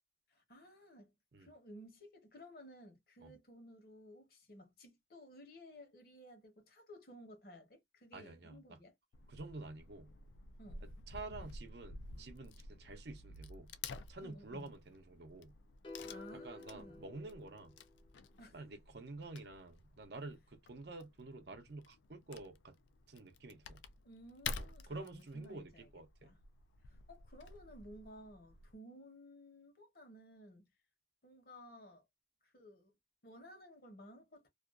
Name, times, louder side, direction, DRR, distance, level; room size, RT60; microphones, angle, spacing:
voice 1, 0.3-1.1 1.4-8.9 10.6-10.9 14.2-14.7 16.1-17.0 18.4-18.6 24.0-25.9 26.2-26.4 26.8-30.7 31.2-32.1 32.4-32.9 33.2-34.5, equal, 55° left, 0.9 m, -56 dB
voice 2, 8.1-8.8 9.3-10.1 11.1-13.7 14.1-15.5 16.4-17.8 18.5-22.8 23.1-23.8 24.6-26.4, right 2 dB, 65° right, 0.6 m, -49 dB
Wood / Tearing, 9.1-28.7, left 4 dB, 90° left, 0.4 m, -51 dB
sound 1, 15.8-18.2, left 3 dB, 30° left, 0.4 m, -52 dB
2.5 x 2.3 x 2.3 m
head